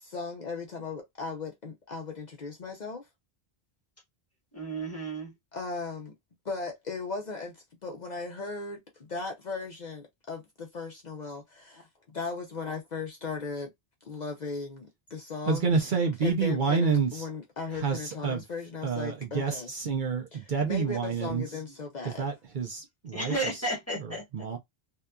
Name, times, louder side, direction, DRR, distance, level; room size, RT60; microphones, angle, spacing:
voice 1, 0.0-3.1 5.5-6.1 6.4-13.7 14.0-15.7 16.2-19.7 20.3-22.2, left 4 dB, 50° left, 0.7 m, -37 dB
voice 2, 4.5-5.3 23.1-24.5, right 2 dB, 15° left, 1.2 m, -33 dB
voice 3, 15.5-17.2 17.8-18.4 18.8-21.4 22.2-23.3 24.3-24.6, right 5 dB, 55° right, 0.7 m, -28 dB
2.8 x 2.4 x 2.2 m
omnidirectional pair, 1.0 m